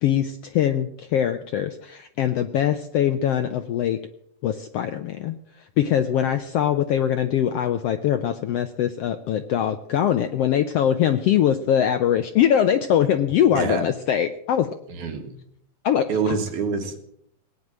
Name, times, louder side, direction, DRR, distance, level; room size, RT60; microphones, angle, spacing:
voice 1, 0.0-4.0 4.4-5.3 5.8-14.8 15.8-16.4, left 10 dB, 80° left, 9 dB, 1.4 m, -22 dB
voice 2, 14.9-15.3 16.1-17.0, right 5 dB, 75° right, 4 dB, 3.2 m, -26 dB
18.0 x 9.5 x 7.5 m, 0.72 s
omnidirectional pair, 3.5 m